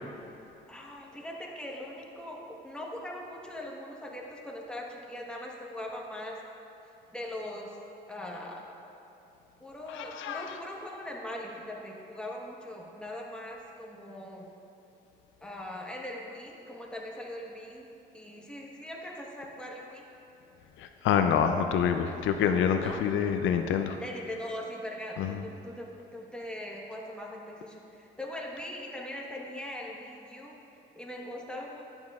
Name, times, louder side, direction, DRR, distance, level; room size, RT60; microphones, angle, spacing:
voice 1, 0.7-6.4 7.1-7.8 8.1-8.7 9.6-14.5 15.4-17.9 18.1-20.0 22.7-23.0 24.0-30.6 30.9-31.8, left 1 dB, 5° left, -2 dB, 1.1 m, -41 dB
voice 2, 9.9-10.5 20.8-24.0 25.2-25.4, left 8 dB, 80° left, 7 dB, 0.4 m, -27 dB
11.0 x 7.0 x 2.4 m, 2.8 s
cardioid pair, 90°, 20 cm